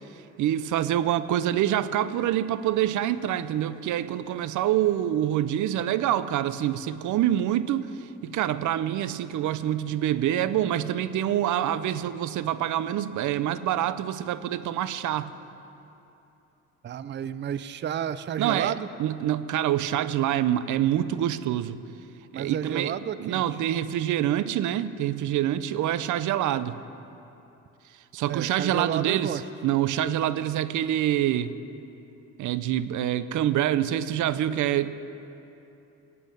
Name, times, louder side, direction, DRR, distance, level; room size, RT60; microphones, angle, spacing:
voice 1, 0.4-15.3 18.4-21.8 22.3-22.9 23.2-26.8 28.1-31.5 32.4-34.9, right 11 dB, 80° right, 14 dB, 0.6 m, -26 dB
voice 2, 16.8-18.9 22.3-23.4 28.3-29.4, right 9 dB, 35° right, 14 dB, 0.5 m, -31 dB
13.5 x 8.7 x 9.1 m, 2.9 s
cardioid pair, 90°, 30 cm